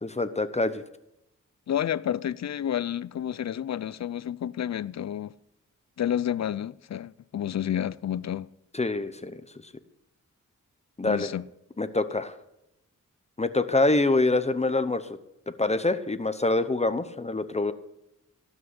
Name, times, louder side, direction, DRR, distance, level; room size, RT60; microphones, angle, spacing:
voice 1, 0.0-0.8 8.7-9.4 11.0-11.3 11.8-12.3 13.4-15.0 15.6-17.7, left 2 dB, 20° left, 0.9 m, -25 dB
voice 2, 1.7-5.3 6.0-8.5 11.0-11.5, left 10 dB, 60° left, 0.5 m, -30 dB
18.0 x 6.2 x 8.0 m
wide cardioid pair, 85°, 31 cm